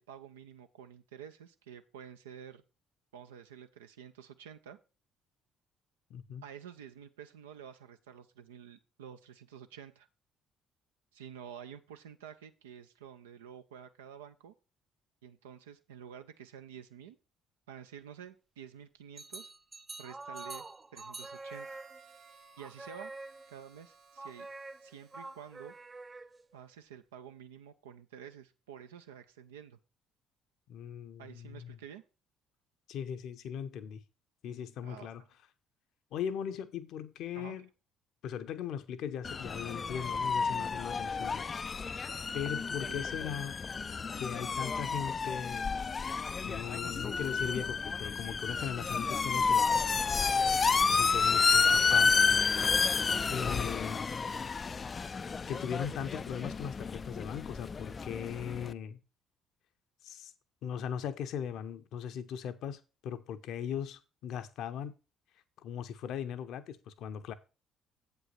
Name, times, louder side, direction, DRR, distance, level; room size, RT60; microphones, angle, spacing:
voice 1, 0.0-2.6 3.1-4.8 6.4-10.1 11.1-14.5 15.2-17.2 17.7-19.5 20.0-20.7 20.9-21.8 22.6-23.2 23.5-24.5 24.8-25.7 26.5-29.8 31.2-32.0 34.8-35.1 37.4-37.6 42.9-43.0 50.5-50.8, right 8 dB, 70° right, 0.5 m, -50 dB
voice 2, 6.1-6.4 30.7-31.8 32.9-34.0 34.4-35.2 36.1-37.7 38.2-42.0 42.3-43.6 44.2-45.7 46.4-49.9 50.9-52.2 53.2-54.1 55.5-59.0 60.0-60.3 60.6-65.0 65.6-67.3, left 8 dB, 55° left, 0.7 m, -39 dB
sound 1, 19.2-22.2 22.6-23.6 24.2-26.6, right 3 dB, 20° right, 0.5 m, -46 dB
Harmonica, 21.3-26.3, right 5 dB, 55° right, 1.8 m, -61 dB
sound 2, 39.2-58.7, left 5 dB, 30° left, 0.3 m, -30 dB
7.9 x 5.3 x 5.9 m
figure-of-eight pair, 50°, 0 cm